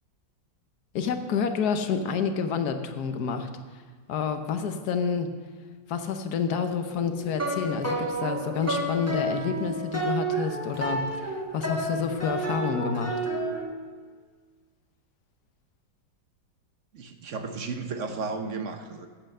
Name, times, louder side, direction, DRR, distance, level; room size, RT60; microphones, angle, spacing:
voice 1, 0.9-3.5 4.1-5.3 5.9-13.2, left 6 dB, 65° left, 7 dB, 1.2 m, -29 dB
sound 1, 6.9-13.6, right 2 dB, 10° right, 1.2 m, -31 dB
voice 2, 16.9-19.1, right 4 dB, 55° right, 6 dB, 0.9 m, -34 dB
9.0 x 8.0 x 6.5 m, 1.5 s
omnidirectional pair, 2.0 m